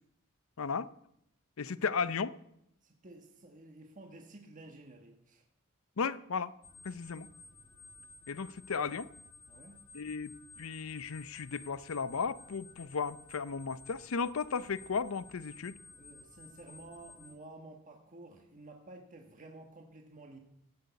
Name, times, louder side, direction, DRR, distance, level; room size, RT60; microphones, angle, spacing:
voice 1, 0.6-0.9 1.6-2.3 6.0-6.5 6.8-7.3 8.3-9.1 9.9-15.8, left 5 dB, 70° left, 0.6 m, -35 dB
voice 2, 2.8-5.4 9.5-9.8 16.0-20.4, right 2 dB, 40° right, 1.4 m, -52 dB
sound 1, 6.6-17.3, left 3 dB, 35° left, 2.1 m, -55 dB
16.5 x 6.6 x 8.2 m
head